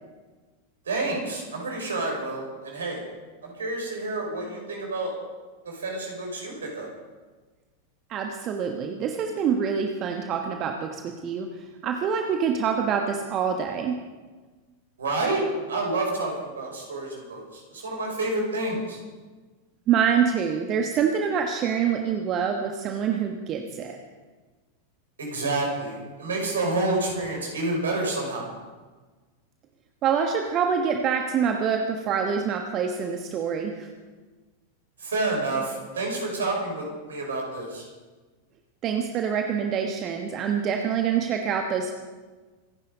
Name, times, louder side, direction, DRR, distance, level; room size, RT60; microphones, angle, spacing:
voice 1, 0.9-3.0 3.4-5.1 5.7-6.9 15.0-19.0 25.2-28.5 35.0-37.9, right 2 dB, 70° right, 0 dB, 5.8 m, -29 dB
voice 2, 8.1-14.0 19.9-24.0 30.0-33.9 38.8-41.9, right 7 dB, 35° right, 4 dB, 1.3 m, -26 dB
25.5 x 10.5 x 5.3 m, 1.4 s
figure-of-eight pair, 90°, 0 cm